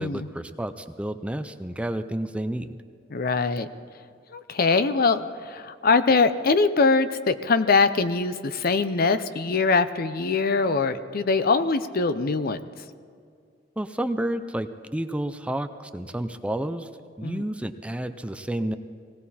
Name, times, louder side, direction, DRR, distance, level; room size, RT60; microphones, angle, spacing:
voice 1, 0.0-2.8 13.8-16.9 17.2-18.8, right 1 dB, 5° right, 9 dB, 0.5 m, -30 dB
voice 2, 3.1-3.7 4.3-12.6 17.2-17.4, left 4 dB, 55° left, 12 dB, 0.6 m, -22 dB
19.5 x 17.0 x 4.2 m, 2.2 s
head